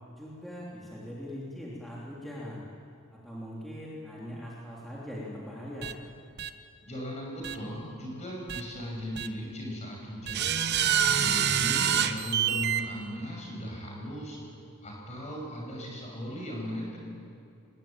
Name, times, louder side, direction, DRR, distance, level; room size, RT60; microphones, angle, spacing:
voice 1, 0.2-2.6 3.1-5.9, equal, ahead, -6 dB, 3.2 m, -41 dB
sound 1, 5.8-5.9 6.4-6.5 7.4-7.6 8.5-8.6 9.2-9.3 10.3-12.8, right 9 dB, 50° right, 1.0 m, -26 dB
voice 2, 6.8-10.8 11.0-14.4 14.8-17.0, equal, 30° left, -1 dB, 6.6 m, -38 dB
23.0 x 20.5 x 9.0 m, 2.6 s
head